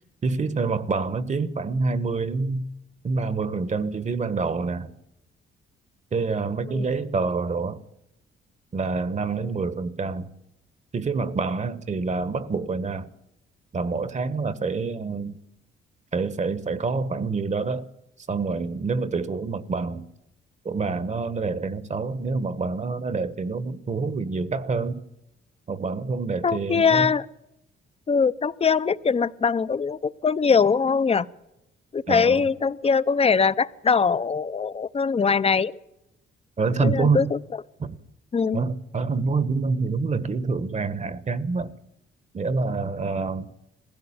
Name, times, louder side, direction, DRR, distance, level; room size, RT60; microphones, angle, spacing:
voice 1, 0.2-2.6 3.0-4.9 6.1-7.8 8.7-10.3 10.9-13.1 13.7-15.4 16.1-17.9 18.3-20.1 20.6-25.0 25.7-27.1 32.1-32.5 36.6-37.3 37.8-38.0 38.5-41.7 42.3-43.5, right 4 dB, 35° right, 1.3 m, -27 dB
voice 2, 26.4-27.3 28.1-31.3 31.9-35.8 36.8-37.4 38.3-38.6, left 5 dB, 30° left, 0.8 m, -22 dB
21.0 x 16.0 x 8.8 m
cardioid pair, 90°, 20 cm